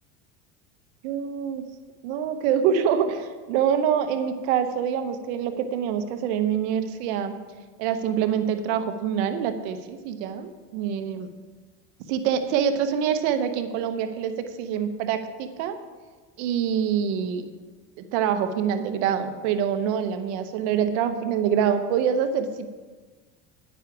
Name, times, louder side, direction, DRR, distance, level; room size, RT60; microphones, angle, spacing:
voice 1, 1.0-1.6 2.0-7.4 7.8-11.3 12.1-15.8 16.4-17.4 18.0-22.7, right 8 dB, 75° right, 9 dB, 1.1 m, -25 dB
9.7 x 9.0 x 4.8 m, 1.4 s
supercardioid pair, 120°, 35 cm